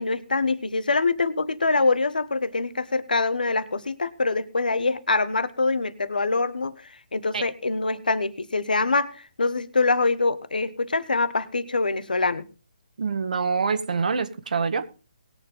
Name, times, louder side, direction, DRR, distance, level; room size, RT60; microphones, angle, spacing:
voice 1, 0.0-6.7 7.1-12.5, left 3 dB, 85° left, 14 dB, 1.4 m, -24 dB
voice 2, 13.0-14.9, right 5 dB, 65° right, 11 dB, 1.7 m, -25 dB
20.0 x 7.3 x 3.9 m, 0.34 s
hypercardioid pair, 145°, 5 cm